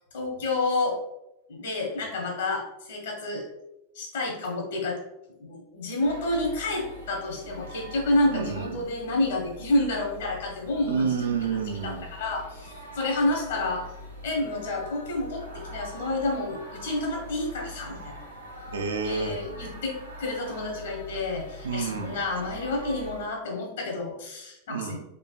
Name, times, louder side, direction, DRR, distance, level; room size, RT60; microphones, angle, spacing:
voice 1, 0.1-1.0 1.5-3.4 3.9-5.0 5.4-11.1 11.8-13.8 14.2-18.2 19.0-25.0, left 2 dB, 60° left, 0 dB, 0.9 m, -29 dB
sound 1, 6.0-23.2, equal, 85° right, 0.8 m, -43 dB
voice 2, 8.2-8.8 10.8-12.1 18.7-19.4 21.6-22.2 24.7-25.0, right 5 dB, 65° right, 5 dB, 0.4 m, -29 dB
3.7 x 2.9 x 2.3 m, 0.87 s
figure-of-eight pair, 90°, 0 cm